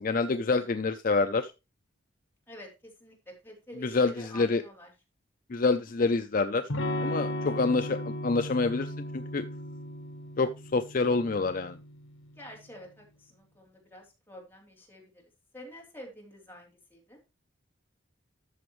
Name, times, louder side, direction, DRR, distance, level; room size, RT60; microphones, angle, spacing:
voice 1, 0.0-1.5 3.8-4.6 5.5-6.7 7.0-9.4 10.4-11.8, left 3 dB, 45° left, 9 dB, 0.5 m, -27 dB
voice 2, 3.0-4.9 12.3-15.2 15.5-17.2, equal, 10° left, -2 dB, 3.2 m, -48 dB
Electric guitar / Strum, 6.7-12.4, left 1 dB, 75° left, 1.2 m, -36 dB
13.0 x 7.0 x 3.1 m, 0.28 s
head